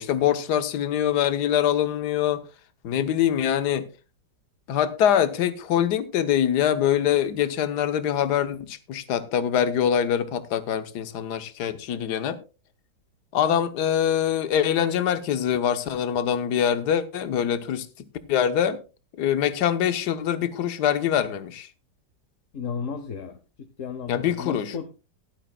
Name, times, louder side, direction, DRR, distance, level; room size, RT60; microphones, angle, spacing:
voice 1, 0.0-2.4 2.8-3.9 4.7-12.4 13.3-18.8 19.2-21.7 24.1-24.7, left 9 dB, 65° left, 1.5 m, -24 dB
voice 2, 22.5-23.4 23.8-24.9, left 6 dB, 50° left, 1.2 m, -33 dB
16.5 x 11.5 x 2.3 m
omnidirectional pair, 1.9 m